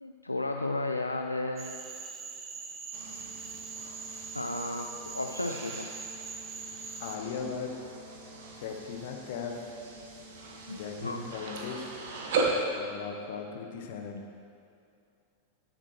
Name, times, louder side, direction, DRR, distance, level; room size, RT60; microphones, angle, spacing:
voice 1, 0.0-1.9 4.3-5.9 10.7-11.3, left 2 dB, 85° left, 4 dB, 0.4 m, -34 dB
Cricket / Frog, 1.6-7.2, right 5 dB, 25° right, 1.0 m, -42 dB
sound 1, 2.9-12.7, right 3 dB, 55° right, 1.3 m, -38 dB
voice 2, 7.0-7.7 8.6-9.5 10.7-12.0 12.7-14.2, left 6 dB, 55° left, 2 dB, 1.2 m, -38 dB
17.0 x 7.4 x 3.2 m, 2.5 s
figure-of-eight pair, 90°, 0 cm